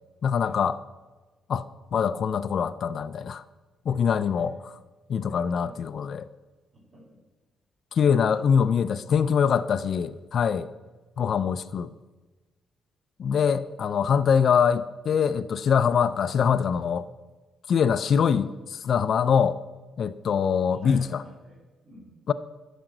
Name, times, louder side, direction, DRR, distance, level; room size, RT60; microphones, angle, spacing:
voice 1, 0.2-0.8 1.5-3.4 3.9-4.8 5.1-6.3 7.9-10.7 11.2-11.9 13.2-17.1 17.7-19.6 20.0-21.2 22.3-22.4, left 7 dB, 55° left, 0.4 m, -24 dB
voice 2, 3.9-4.7 5.3-5.7 6.7-7.2 8.3-8.4 18.1-18.4 20.7-21.6 21.8-22.2, equal, 30° right, 3.8 m, -51 dB
10.5 x 5.1 x 7.7 m
cardioid pair, 90°, 0 cm